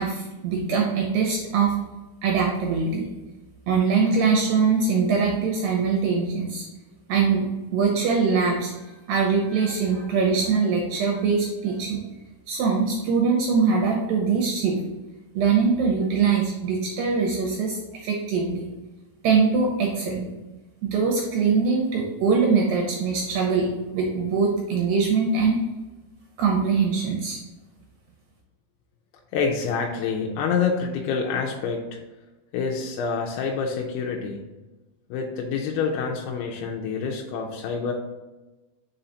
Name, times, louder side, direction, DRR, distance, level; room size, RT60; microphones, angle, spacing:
voice 1, 0.0-1.8 2.2-3.1 3.7-6.7 7.1-8.7 9.1-12.0 12.5-14.8 15.3-18.7 19.2-20.3 20.8-25.6 26.4-27.4, right 5 dB, 75° right, -1 dB, 2.4 m, -22 dB
voice 2, 29.3-31.9 32.5-34.4 35.1-37.9, left 5 dB, 85° left, 0 dB, 2.7 m, -27 dB
5.6 x 4.8 x 3.9 m, 1.1 s
omnidirectional pair, 4.6 m